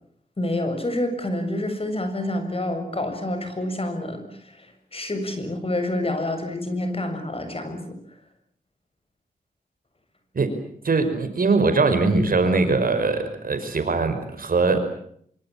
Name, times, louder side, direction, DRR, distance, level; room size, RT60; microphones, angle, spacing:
voice 1, 0.4-4.2 4.5-8.0, left 1 dB, 40° left, 8 dB, 7.0 m, -28 dB
voice 2, 10.8-14.8, right 3 dB, 70° right, 8 dB, 5.6 m, -21 dB
25.5 x 25.0 x 7.4 m, 0.65 s
cardioid pair, 65°, 16 cm